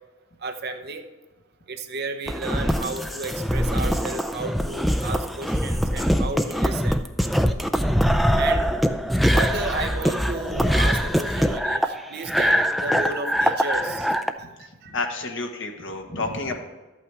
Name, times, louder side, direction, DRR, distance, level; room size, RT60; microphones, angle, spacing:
voice 1, 0.4-1.0 1.7-7.0 8.3-8.7 9.3-14.9, right 3 dB, 50° right, 6 dB, 0.8 m, -33 dB
sound 1, 2.3-14.3, equal, ahead, 0.3 m, -23 dB
voice 2, 14.9-16.6, left 3 dB, 60° left, 3 dB, 1.3 m, -29 dB
13.0 x 8.6 x 3.4 m, 1.2 s
head